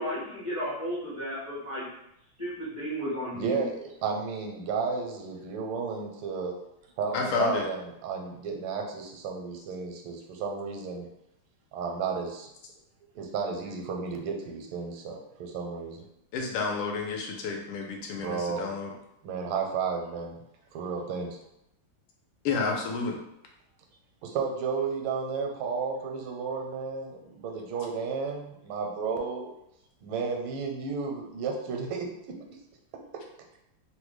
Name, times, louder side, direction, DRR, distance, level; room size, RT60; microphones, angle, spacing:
voice 1, 0.0-1.9 2.4-3.6, equal, 55° left, -8 dB, 0.3 m, -33 dB
voice 2, 3.3-6.5 7.0-11.1 11.7-12.5 13.1-16.0 18.2-18.7 19.2-20.3 20.7-21.4 24.2-29.5 30.0-32.4, right 5 dB, 80° right, 2 dB, 1.4 m, -32 dB
voice 3, 7.1-7.7 16.3-18.9 22.4-23.2, left 5 dB, 85° left, 1 dB, 1.6 m, -30 dB
3.6 x 2.1 x 3.1 m, 0.82 s
omnidirectional pair, 2.4 m